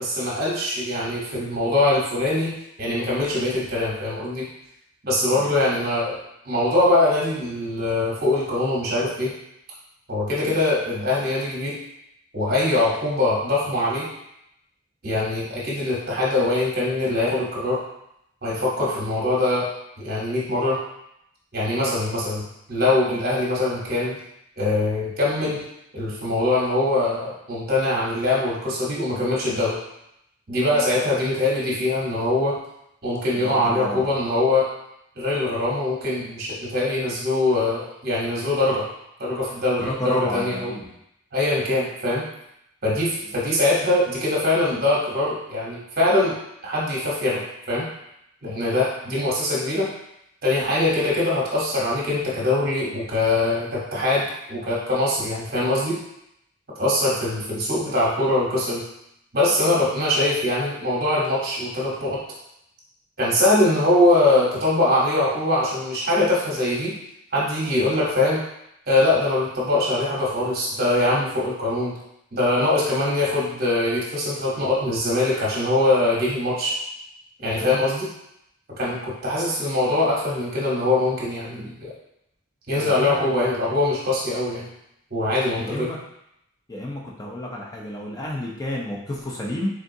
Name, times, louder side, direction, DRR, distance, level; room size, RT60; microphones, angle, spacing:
voice 1, 0.0-4.5 5.0-6.2 6.4-9.3 10.1-11.8 12.3-14.1 15.0-17.8 18.4-19.7 20.0-20.8 21.5-24.2 24.6-25.6 25.9-29.8 30.5-32.6 33.0-34.7 35.2-38.9 39.2-40.7 41.3-42.3 42.8-46.3 46.6-47.9 48.4-49.9 50.4-56.0 56.8-58.8 59.3-62.2 63.2-67.0 67.3-68.4 68.9-72.0 72.3-76.8 77.4-78.1 78.7-81.9 82.7-84.7 85.1-85.9, left 2 dB, 45° right, -6 dB, 1.0 m, -22 dB
voice 2, 33.4-34.2 39.9-40.9 77.6-77.8 82.8-83.4 85.6-86.0 86.7-89.7, left 1 dB, 20° left, -2 dB, 0.5 m, -31 dB
3.7 x 3.6 x 2.7 m, 0.80 s
head